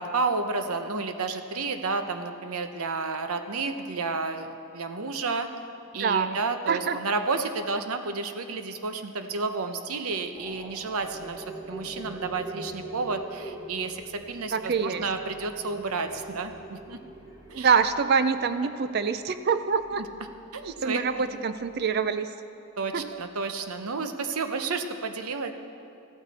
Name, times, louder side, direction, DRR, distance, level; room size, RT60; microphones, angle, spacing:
voice 1, 0.0-5.5 5.9-17.0 17.5-17.7 20.5-21.2 22.8-25.5, right 4 dB, 85° right, 8 dB, 0.8 m, -31 dB
voice 2, 6.0-6.4 6.7-7.0 14.5-15.1 17.5-20.0 20.6-22.3 22.9-23.1, right 6 dB, 45° right, 11 dB, 0.4 m, -25 dB
sound 1, 10.3-22.0, right 2 dB, 15° right, 1.1 m, -44 dB
14.5 x 12.5 x 4.2 m, 2.6 s
head